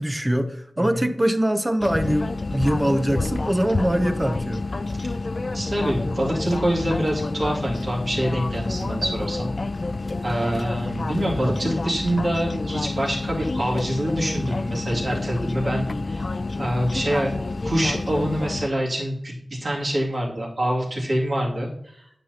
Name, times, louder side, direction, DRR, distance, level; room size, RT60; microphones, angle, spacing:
voice 1, 0.0-4.6 11.4-11.6, right 1 dB, 15° right, 7 dB, 0.7 m, -23 dB
voice 2, 0.8-1.1 5.5-9.5 10.2-16.2 16.6-17.3 17.6-22.0, equal, 60° right, -4 dB, 2.3 m, -25 dB
sound 1, 1.8-18.7, left 3 dB, 50° left, 0.3 m, -29 dB
9.0 x 5.9 x 2.8 m, 0.70 s
wide cardioid pair, 80°, 0 cm